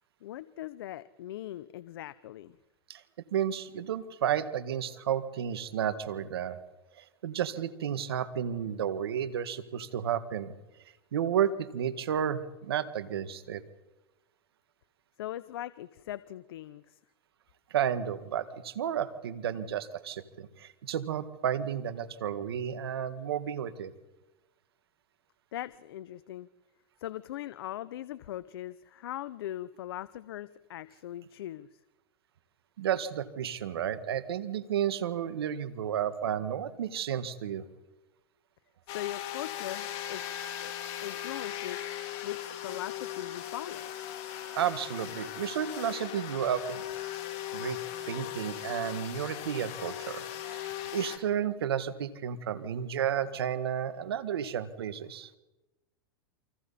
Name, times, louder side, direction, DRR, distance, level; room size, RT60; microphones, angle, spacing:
voice 1, 0.2-2.6 15.2-17.0 25.5-26.5 27.0-31.8 38.9-40.2 40.6-40.7 41.0-41.8 42.2-43.9, left 13 dB, 75° left, 16 dB, 0.7 m, -40 dB
voice 2, 3.3-6.6 7.0-10.5 11.1-13.6 17.7-23.9 32.8-37.7 44.6-46.8 47.5-47.8 48.1-50.6 50.9-55.3, right 9 dB, 85° right, 12 dB, 1.7 m, -32 dB
sound 1, 38.9-51.2, left 11 dB, 50° left, 3.4 m, -38 dB
29.0 x 25.0 x 4.2 m, 1.0 s
hypercardioid pair, 120°, 13 cm